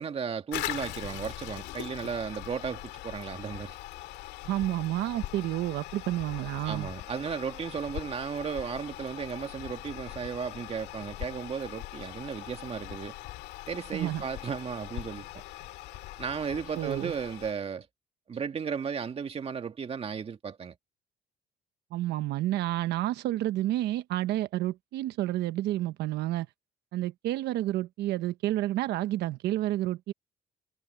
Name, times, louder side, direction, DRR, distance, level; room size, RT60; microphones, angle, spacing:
voice 1, 0.0-3.8 6.7-13.1 13.7-15.4 16.2-17.9 18.3-20.8, right 6 dB, 35° right, 2.0 m, -35 dB
Toilet flush, 0.5-17.5, left 16 dB, 85° left, 2.2 m, -41 dB
voice 2, 4.4-6.9 13.9-14.2 16.7-17.1 21.9-26.5 26.9-30.1, right 15 dB, 80° right, 1.2 m, -30 dB
cardioid pair, 110°, 17 cm